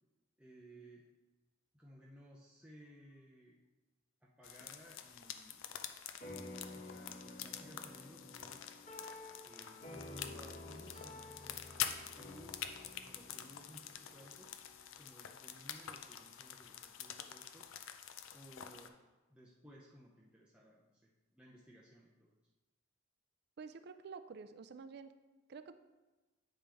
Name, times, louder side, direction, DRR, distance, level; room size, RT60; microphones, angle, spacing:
voice 1, 0.4-1.1 1.7-3.6 4.2-5.8 6.7-8.6 9.5-11.6 12.1-14.5 15.0-17.7 18.3-18.9 19.3-22.4, equal, 5° right, -5 dB, 0.6 m, -59 dB
sound 1, 4.4-18.9, left 9 dB, 80° left, 0.5 m, -47 dB
sound 2, 6.2-14.9, left 2 dB, 35° left, 1.3 m, -52 dB
voice 2, 23.6-25.1 25.5-25.8, right 5 dB, 55° right, 11 dB, 0.4 m, -49 dB
8.7 x 5.1 x 3.4 m, 1.2 s
head